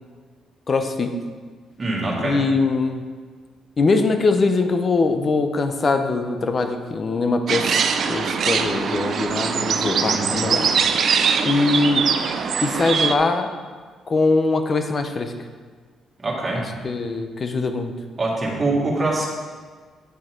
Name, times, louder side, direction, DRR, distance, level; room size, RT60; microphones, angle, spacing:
voice 1, 0.7-1.1 2.2-3.0 3.8-7.6 8.1-10.7 11.4-12.1 12.6-13.5 14.1-15.3 16.8-17.9, left 3 dB, 40° left, 7 dB, 0.9 m, -22 dB
voice 2, 1.8-2.4 10.1-10.4 16.2-16.6 18.2-19.3, right 2 dB, 35° right, -4 dB, 2.2 m, -24 dB
sound 1, 7.5-13.1, right 6 dB, 60° right, 0.6 m, -22 dB
9.7 x 6.3 x 4.6 m, 1.5 s
cardioid pair, 90°, 0 cm